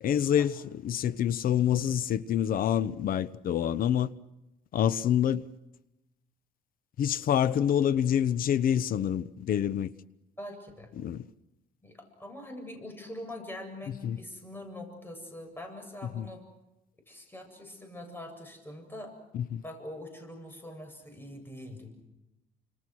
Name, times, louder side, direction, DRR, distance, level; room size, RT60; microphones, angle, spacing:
voice 1, 0.0-4.1 4.7-5.4 7.0-9.9 11.0-11.3 14.0-14.2 16.1-16.3 19.3-19.6, left 9 dB, 55° left, 1.0 m, -27 dB
voice 2, 10.4-10.9 11.8-16.4 17.1-19.1 19.6-21.9, left 1 dB, 10° left, 7.9 m, -43 dB
29.5 x 27.0 x 6.2 m
cardioid pair, 110°, 17 cm